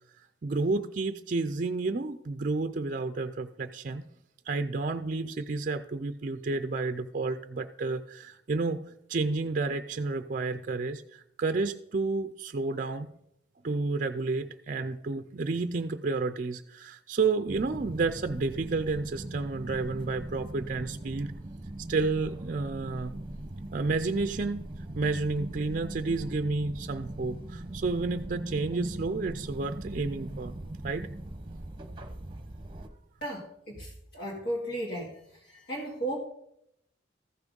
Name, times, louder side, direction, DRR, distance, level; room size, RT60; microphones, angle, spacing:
voice 1, 0.4-4.0 4.5-8.8 9.1-13.1 13.6-21.3 21.9-23.1 23.7-24.7 24.9-30.5 30.8-31.1, right 3 dB, 45° right, 9 dB, 0.4 m, -31 dB
sound 1, 17.5-32.9, right 1 dB, 25° right, 0.9 m, -40 dB
voice 2, 33.2-35.1 35.5-36.2, right 1 dB, 60° left, -5 dB, 2.2 m, -35 dB
14.0 x 6.1 x 5.2 m, 0.77 s
head